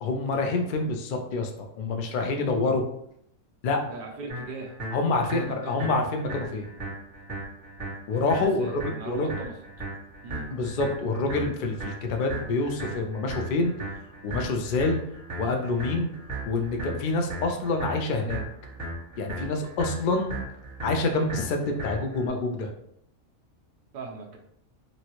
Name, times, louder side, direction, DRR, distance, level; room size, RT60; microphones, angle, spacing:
voice 1, 0.0-1.5 1.8-2.8 3.6-3.8 4.9-6.7 8.1-9.3 10.5-13.7 14.2-15.0 15.4-16.1 16.5-18.4 19.2-20.4 20.8-22.7, left 3 dB, 75° left, 3 dB, 0.4 m, -27 dB
voice 2, 3.9-4.8 5.3-6.1 8.4-9.5 10.2-10.5 23.9-24.4, right 3 dB, 80° right, 0 dB, 0.4 m, -40 dB
sound 1, 4.3-22.3, right 1 dB, 10° right, 1.4 m, -37 dB
3.0 x 2.6 x 2.9 m, 0.72 s
omnidirectional pair, 1.5 m